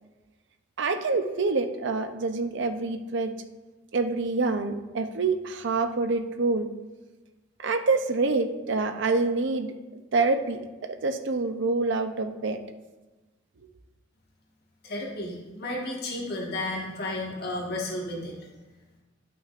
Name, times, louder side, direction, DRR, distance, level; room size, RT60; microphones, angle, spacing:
voice 1, 0.8-3.3 3.9-6.7 7.6-12.6, right 3 dB, 60° right, 7 dB, 0.6 m, -26 dB
voice 2, 14.8-18.3, left 1 dB, 55° left, -2 dB, 1.5 m, -32 dB
11.0 x 6.0 x 2.5 m, 1.2 s
head